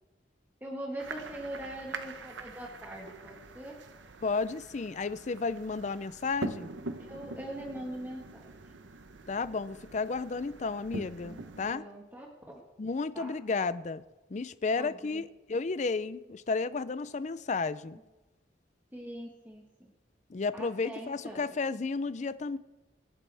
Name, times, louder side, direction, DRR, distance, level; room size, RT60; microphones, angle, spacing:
voice 1, 0.6-3.8 7.1-8.5 11.3-12.6 13.1-13.3 14.8-15.2 18.9-19.7 20.5-21.5, right 1 dB, 10° right, 1.4 m, -42 dB
sound 1, 1.0-11.7, right 2 dB, 80° right, 0.9 m, -44 dB
voice 2, 4.2-6.7 9.3-11.8 12.8-14.0 14.3-18.0 20.3-22.6, left 4 dB, 40° left, 0.4 m, -32 dB
24.5 x 8.7 x 3.4 m
head